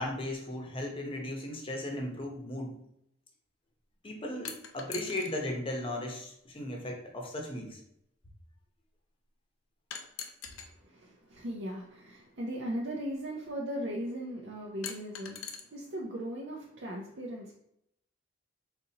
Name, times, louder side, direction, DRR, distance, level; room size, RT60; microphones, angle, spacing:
voice 1, 0.0-2.8 4.0-7.8, left 1 dB, 25° left, 1 dB, 0.8 m, -36 dB
sound 1, 4.4-5.3 6.6-6.7 9.9-10.7 12.1-12.2 14.8-15.6, left 7 dB, 90° left, 0.6 m, -41 dB
voice 2, 10.8-17.5, equal, 65° right, -3 dB, 0.6 m, -38 dB
4.2 x 3.8 x 2.8 m, 0.76 s
head